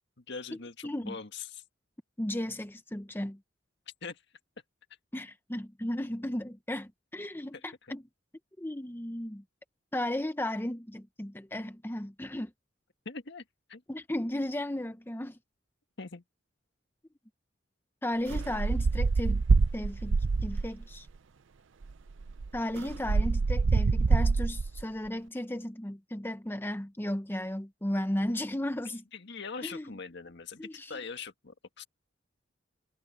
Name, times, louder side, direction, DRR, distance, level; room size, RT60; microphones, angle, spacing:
voice 1, 0.2-1.6 4.0-4.2 7.5-7.9 13.0-13.8 16.0-16.2 29.1-31.9, left 5 dB, 65° left, 1.8 m, -42 dB
voice 2, 0.8-1.2 2.2-3.4 5.1-8.0 8.6-9.4 9.9-12.5 13.9-15.4 18.0-19.4 19.7-21.1 22.5-29.0 29.6-29.9 30.6-31.0, left 1 dB, 10° left, 0.8 m, -35 dB
sound 1, 18.3-20.8 21.8-21.9 22.2-24.8, right 4 dB, 75° right, 0.5 m, -26 dB
head